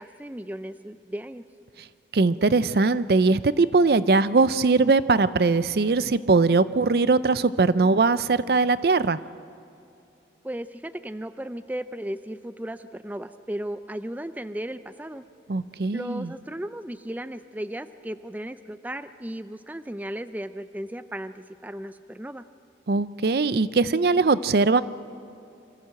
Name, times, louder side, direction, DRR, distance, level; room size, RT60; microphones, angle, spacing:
voice 1, 0.0-1.4 10.4-15.2 15.9-22.4, right 1 dB, 10° right, 11 dB, 0.4 m, -35 dB
voice 2, 2.1-9.2 15.5-16.3 22.9-24.8, right 3 dB, 60° right, 15 dB, 0.5 m, -21 dB
25.5 x 14.5 x 7.7 m, 2.8 s
head